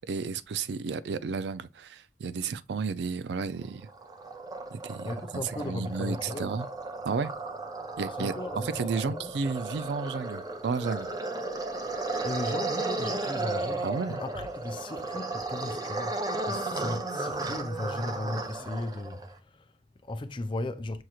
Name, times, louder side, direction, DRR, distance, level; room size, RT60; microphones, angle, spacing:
voice 1, 0.1-3.9 4.7-6.7 7.0-7.3 8.0-8.3 8.6-11.1 13.8-14.2, right 5 dB, 70° right, 0.4 m, -32 dB
sound 1, 3.6-19.3, right 2 dB, 20° right, 0.6 m, -34 dB
voice 2, 5.0-6.5 8.2-9.3 12.2-21.0, left 2 dB, 30° left, 0.4 m, -37 dB
6.2 x 2.9 x 2.3 m
head